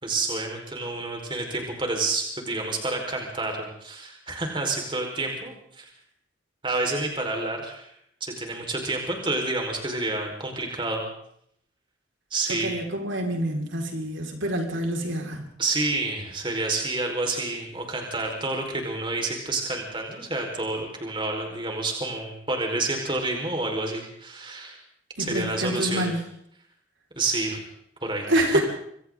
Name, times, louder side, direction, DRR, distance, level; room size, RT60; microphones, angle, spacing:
voice 1, 0.0-5.9 6.6-7.9 8.2-11.0 12.3-12.7 15.6-24.8 25.2-26.1 27.1-27.6 28.0-28.6, right 2 dB, 25° right, 2 dB, 5.1 m, -29 dB
voice 2, 12.6-15.5 25.2-26.2 28.3-28.6, right 1 dB, 75° right, 1 dB, 5.5 m, -27 dB
28.0 x 24.5 x 4.0 m, 0.70 s
head